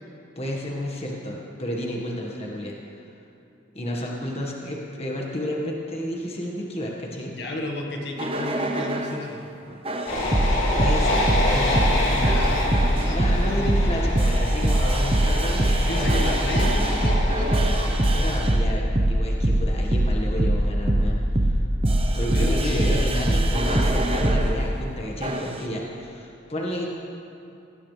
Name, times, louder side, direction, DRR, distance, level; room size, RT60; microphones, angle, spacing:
voice 1, 0.3-2.7 3.7-7.3 10.7-11.9 13.1-16.4 18.1-21.6 22.1-26.9, equal, 30° left, -2 dB, 1.7 m, -31 dB
voice 2, 7.3-9.4 11.6-13.7 15.9-18.0 22.1-23.3, left 2 dB, 60° left, -1 dB, 1.7 m, -33 dB
sound 1, 8.2-9.2 9.8-24.5 25.2-25.6, right 1 dB, 30° right, 0.9 m, -22 dB
sound 2, 10.1-18.3, left 1 dB, 75° left, 3.1 m, -27 dB
18.5 x 17.0 x 3.4 m, 2.6 s
head